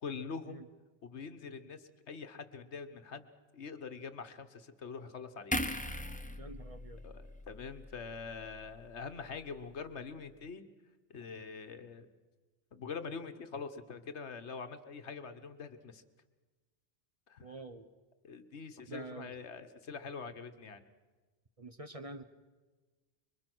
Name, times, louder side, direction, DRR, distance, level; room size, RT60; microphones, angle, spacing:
voice 1, 0.0-0.6 1.0-3.3 3.5-5.6 7.0-10.6 11.1-12.1 12.7-16.0 17.3-17.4 18.2-20.9, left 5 dB, 70° left, 9 dB, 1.5 m, -44 dB
sound 1, 5.5-8.9 9.2-9.4, left 1 dB, 5° left, 0.9 m, -40 dB
voice 2, 6.4-7.0 17.4-17.9 18.9-19.3 21.6-22.2, right 2 dB, 30° right, 9 dB, 0.9 m, -46 dB
25.5 x 23.0 x 6.1 m, 1.3 s
omnidirectional pair, 1.2 m